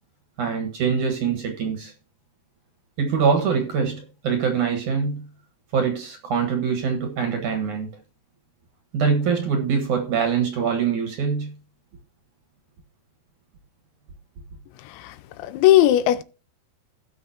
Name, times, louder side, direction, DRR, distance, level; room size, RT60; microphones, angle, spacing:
voice 1, 0.4-1.9 3.0-5.2 5.7-7.9 8.9-11.5, right 6 dB, 55° right, 2.4 m, -23 dB
voice 2, 14.9-16.2, left 13 dB, 90° left, 3.1 m, -18 dB
17.5 x 6.2 x 2.8 m
omnidirectional pair, 5.2 m